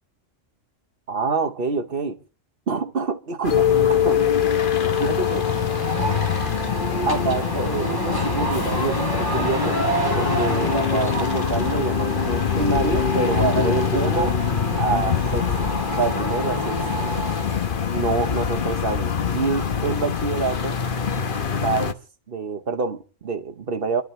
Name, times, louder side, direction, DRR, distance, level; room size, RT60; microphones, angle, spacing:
voice 1, 1.1-2.2 2.7-3.7 4.0-4.2 5.0-5.5 7.1-9.8 10.1-14.4 14.8-17.1 17.9-20.8 21.5-22.0 22.3-24.0, right 4 dB, 50° right, 1.2 m, -26 dB
sound 1, 3.4-21.9, left 7 dB, 45° left, 1.1 m, -25 dB
Mallet percussion, 3.5-7.7, left 10 dB, 80° left, 1.7 m, -23 dB
sound 2, 4.8-17.6, equal, 15° left, 3.6 m, -28 dB
29.0 x 12.0 x 3.2 m
omnidirectional pair, 1.3 m